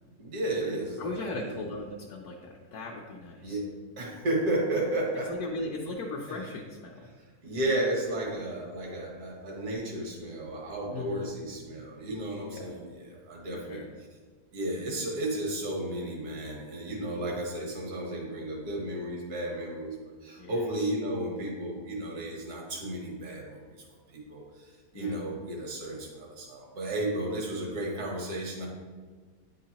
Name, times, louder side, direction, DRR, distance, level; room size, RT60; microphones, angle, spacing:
voice 1, 0.2-1.7 3.4-3.7 4.0-5.3 6.3-6.4 7.4-13.8 14.5-20.0 20.2-23.8 24.1-28.7, right 1 dB, 75° right, -1 dB, 1.7 m, -33 dB
voice 2, 1.0-3.6 5.3-7.1 10.9-11.2 12.5-12.7 13.5-13.9 20.4-20.9 24.9-25.2 27.3-27.5, left 2 dB, 75° left, -1 dB, 1.1 m, -38 dB
9.3 x 3.8 x 2.8 m, 1.5 s
omnidirectional pair, 1.7 m